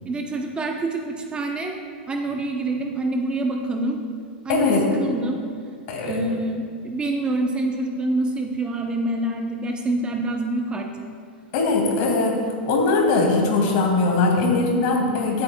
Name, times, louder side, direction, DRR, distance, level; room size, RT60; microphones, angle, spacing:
voice 1, 0.0-1.7 2.1-4.0 4.4-5.4 6.0-10.9, right 2 dB, 15° right, 2 dB, 0.8 m, -26 dB
voice 2, 4.5-4.8 5.9-6.2 11.5-12.4 12.7-15.4, left 3 dB, 55° left, 1 dB, 2.2 m, -20 dB
15.5 x 8.5 x 2.3 m, 2.1 s
hypercardioid pair, 125°, 6 cm